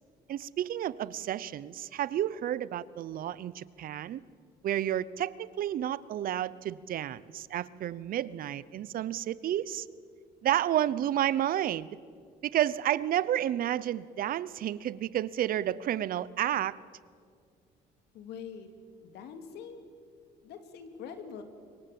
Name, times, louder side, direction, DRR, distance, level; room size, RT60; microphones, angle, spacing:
voice 1, 0.3-4.2 4.6-9.9 10.4-12.0 12.4-16.8, right 11 dB, 60° right, 19 dB, 0.7 m, -31 dB
voice 2, 18.1-18.7 19.0-19.8 20.4-21.4, left 7 dB, 75° left, 7 dB, 2.8 m, -44 dB
25.5 x 23.0 x 7.7 m, 2.1 s
cardioid pair, 110°, 17 cm